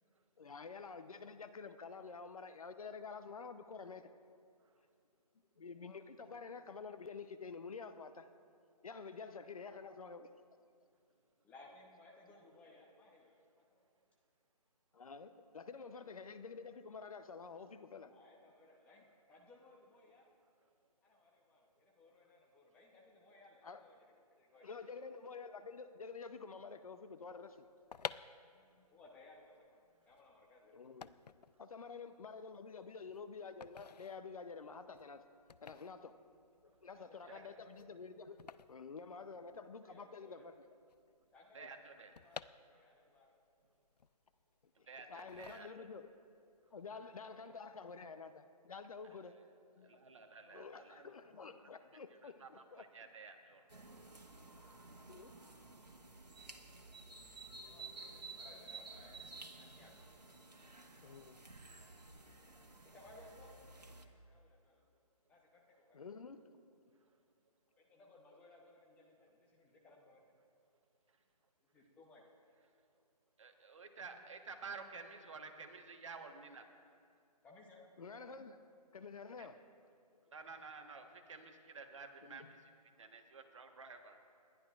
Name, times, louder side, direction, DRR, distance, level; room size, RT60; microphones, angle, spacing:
voice 1, 0.4-4.1 5.6-8.3 8.8-10.3 14.9-18.1 23.6-23.8 24.6-27.7 30.7-31.2 31.6-35.2 35.6-36.2 36.6-38.4 38.7-40.6 41.6-41.7 44.8-46.1 46.7-49.4 49.8-49.9 50.5-52.8 55.1-55.3 61.0-61.4 65.9-66.5 78.0-78.7 78.9-79.6 80.1-80.2 82.2-82.5, left 5 dB, 60° left, 10 dB, 0.8 m, -49 dB
voice 2, 11.4-13.8 15.9-16.3 18.1-20.3 21.0-24.8 28.5-30.8 36.9-37.6 39.7-40.5 41.3-43.3 47.0-47.6 47.8-47.9 57.6-59.3 59.6-59.9 62.9-64.9 65.3-66.0 67.8-70.2 71.7-72.2 77.4-77.9, left 2 dB, 5° left, -2 dB, 0.8 m, -62 dB
sound 1, 27.7-39.8 40.1-40.2 40.3-43.2 43.6-44.6 45.2-46.2 46.5-46.8, left 7 dB, 75° left, 0.4 m, -51 dB
voice 3, 41.5-42.1 44.9-45.7 49.0-49.1 49.8-51.1 51.6-51.7 52.2-53.7 73.4-76.7 79.4-79.5 80.3-82.5 83.0-84.2, right 4 dB, 50° right, 5 dB, 1.3 m, -52 dB
sound 2, 53.7-64.0, right 3 dB, 90° right, 1.4 m, -53 dB
29.5 x 11.0 x 2.5 m, 2.4 s
figure-of-eight pair, 150°, 21 cm